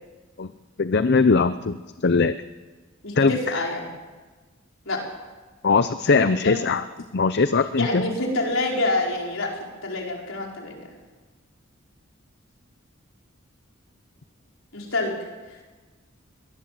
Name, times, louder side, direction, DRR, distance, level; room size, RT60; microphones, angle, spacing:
voice 1, 0.8-2.4 3.2-3.6 5.6-6.9 7.1-8.1, left 4 dB, 55° left, 12 dB, 0.6 m, -21 dB
voice 2, 3.0-3.9 4.9-5.0 6.1-6.7 7.8-9.5 9.8-10.9 14.7-15.2 15.5-15.6, left 2 dB, 70° left, 0 dB, 5.2 m, -27 dB
22.5 x 19.0 x 7.8 m, 1.3 s
head